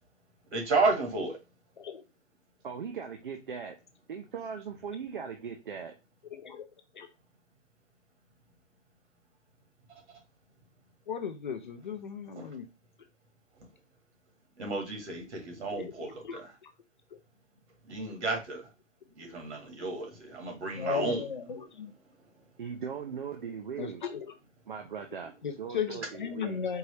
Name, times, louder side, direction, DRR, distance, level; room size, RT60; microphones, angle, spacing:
voice 1, 0.5-1.4 12.4-12.5 14.6-16.5 17.9-18.6 19.2-21.2, right 3 dB, 65° right, 1.9 m, -32 dB
voice 2, 2.6-3.8 4.1-5.9 22.6-24.0 24.7-25.3 25.6-26.6, right 6 dB, 45° right, 0.5 m, -39 dB
voice 3, 6.3-6.6 6.9-7.1 11.1-12.6 15.7-15.9 16.2-16.7 20.7-21.9 23.8-24.3 25.4-26.8, left 7 dB, 40° left, 0.5 m, -36 dB
4.6 x 2.6 x 3.2 m
hypercardioid pair, 160°, 38 cm